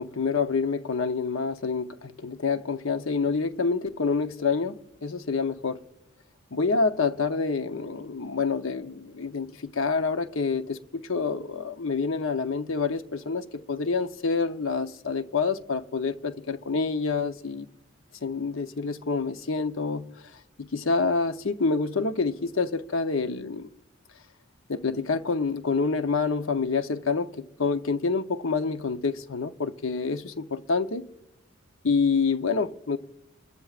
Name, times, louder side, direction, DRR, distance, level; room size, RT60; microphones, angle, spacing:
voice 1, 0.0-5.8 6.5-17.7 18.2-20.3 20.6-23.7 24.7-31.1 31.8-33.0, left 4 dB, 80° left, 0.8 m, -27 dB
27.0 x 14.0 x 2.5 m
head